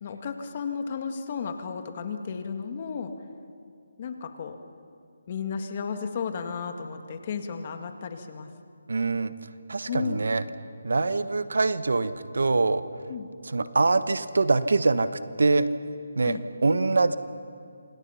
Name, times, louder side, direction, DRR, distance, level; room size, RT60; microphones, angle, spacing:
voice 1, 0.0-3.1 4.0-4.6 5.3-8.5 9.9-10.3 13.1-13.3 16.2-16.4, left 6 dB, 35° left, 6 dB, 2.0 m, -33 dB
voice 2, 8.9-9.3 9.7-10.4 10.8-12.8 13.4-15.1 15.4-15.7 16.1-17.2, right 3 dB, 75° right, 12 dB, 1.2 m, -24 dB
27.0 x 26.5 x 5.9 m, 2.4 s
hypercardioid pair, 160°, 0 cm